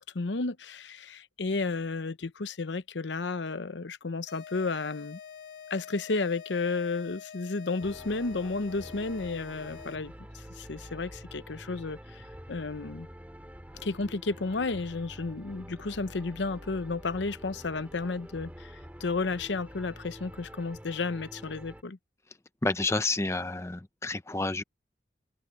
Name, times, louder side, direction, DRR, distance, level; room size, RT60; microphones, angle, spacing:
voice 1, 0.0-5.2 5.7-13.1 13.8-22.0, left 3 dB, 85° left, 0.8 m, -32 dB
sound 1, 4.3-10.2, left 7 dB, 60° left, 1.7 m, -46 dB
sound 2, 7.8-21.8, equal, 10° right, 2.2 m, -47 dB
voice 2, 22.6-24.6, left 2 dB, 15° left, 0.6 m, -29 dB
open air
head